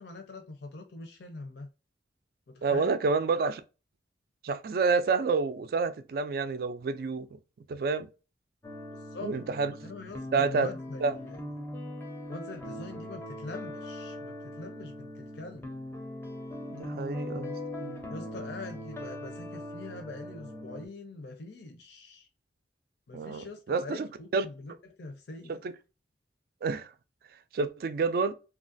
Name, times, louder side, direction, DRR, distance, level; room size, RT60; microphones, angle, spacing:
voice 1, 0.0-1.7 2.5-3.0 8.9-9.3 9.8-11.4 12.3-15.7 18.1-22.3 23.1-25.7, left 2 dB, 70° left, 0.6 m, -44 dB
voice 2, 2.6-3.6 4.4-7.3 7.7-8.1 9.2-9.7 10.3-10.7 11.0-11.1 16.7-17.6 17.8-18.0 23.1-24.5 25.6-25.7 26.6-26.9 27.5-28.3, right 4 dB, 55° right, 0.3 m, -28 dB
sound 1, 8.6-20.9, left 1 dB, 15° left, 0.5 m, -40 dB
3.1 x 2.4 x 2.5 m
head